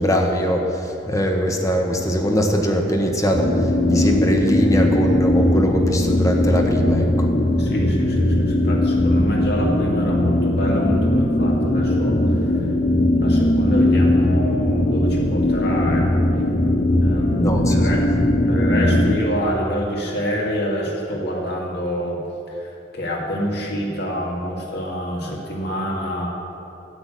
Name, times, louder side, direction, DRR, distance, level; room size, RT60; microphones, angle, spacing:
voice 1, 0.0-3.5 3.9-7.3 17.4-17.8, equal, 20° left, 2 dB, 1.2 m, -21 dB
sound 1, 3.3-19.2, left 1 dB, 40° left, 0.8 m, -19 dB
voice 2, 7.6-12.7 13.2-16.3 17.0-18.0 18.5-22.2 22.5-26.3, equal, 60° left, -2 dB, 2.4 m, -27 dB
9.8 x 8.9 x 8.3 m, 2.8 s
head